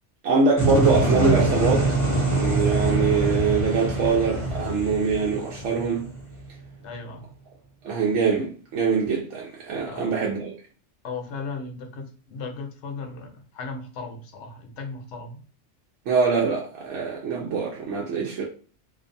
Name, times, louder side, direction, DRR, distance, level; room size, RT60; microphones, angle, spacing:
voice 1, 0.2-1.9 2.3-6.1 7.8-10.5 16.1-18.4, right 5 dB, 80° right, 0.9 m, -23 dB
sound 1, 0.6-6.4, right 2 dB, 20° left, 0.7 m, -24 dB
voice 2, 6.8-7.3 9.8-10.2 11.0-15.4, left 4 dB, 70° left, 0.9 m, -36 dB
2.5 x 2.3 x 2.5 m
omnidirectional pair, 1.3 m